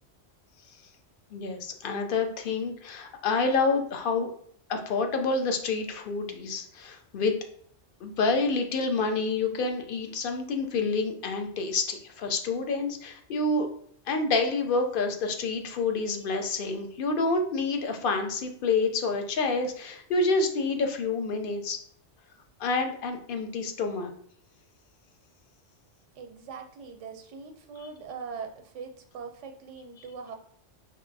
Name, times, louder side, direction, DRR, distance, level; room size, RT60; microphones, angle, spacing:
voice 1, 1.3-4.3 4.7-7.3 8.0-13.7 14.1-21.8 22.6-24.1, left 3 dB, 55° left, 5 dB, 0.7 m, -28 dB
voice 2, 26.2-30.3, right 5 dB, 90° right, 6 dB, 0.9 m, -41 dB
4.5 x 3.1 x 2.6 m, 0.62 s
omnidirectional pair, 1.2 m